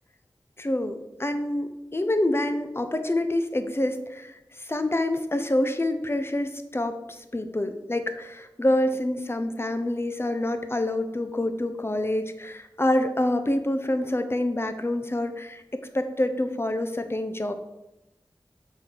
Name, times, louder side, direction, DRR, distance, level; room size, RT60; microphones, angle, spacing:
voice 1, 0.6-17.5, left 1 dB, 30° left, 8 dB, 0.8 m, -27 dB
6.4 x 4.3 x 6.3 m, 0.96 s
wide cardioid pair, 50°, 9 cm